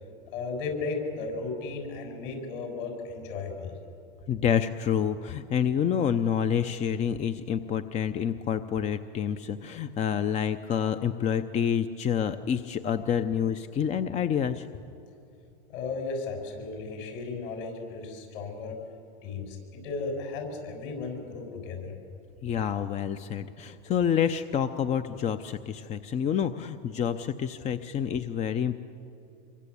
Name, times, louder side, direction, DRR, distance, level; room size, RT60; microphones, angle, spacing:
voice 1, 0.3-3.7 15.7-18.7 19.2-22.0, left 4 dB, 60° left, 3 dB, 7.4 m, -35 dB
voice 2, 4.3-14.7 22.4-28.8, left 8 dB, 20° left, 11 dB, 0.7 m, -28 dB
26.5 x 23.5 x 8.6 m, 2.6 s
supercardioid pair, 135°, 31 cm